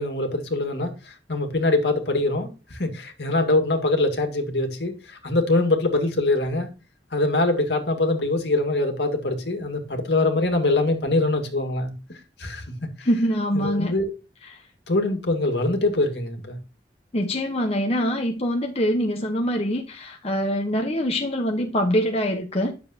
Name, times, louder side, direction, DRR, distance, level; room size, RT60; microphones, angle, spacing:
voice 1, 0.0-6.7 7.1-12.6 13.0-13.1 13.5-14.1 14.9-16.6, left 2 dB, 65° left, 2.1 m, -23 dB
voice 2, 13.0-13.9 17.1-22.7, equal, 35° left, 1.1 m, -24 dB
10.5 x 7.0 x 2.9 m
head